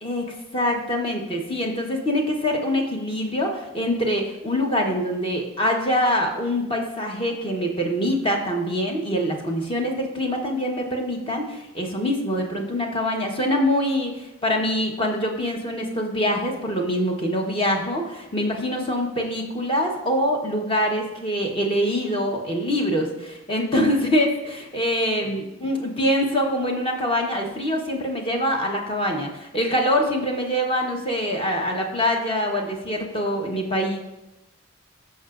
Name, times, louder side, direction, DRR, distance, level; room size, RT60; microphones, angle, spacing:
voice 1, 0.0-34.0, equal, 25° left, 1 dB, 1.1 m, -24 dB
13.5 x 5.6 x 2.5 m, 0.95 s
head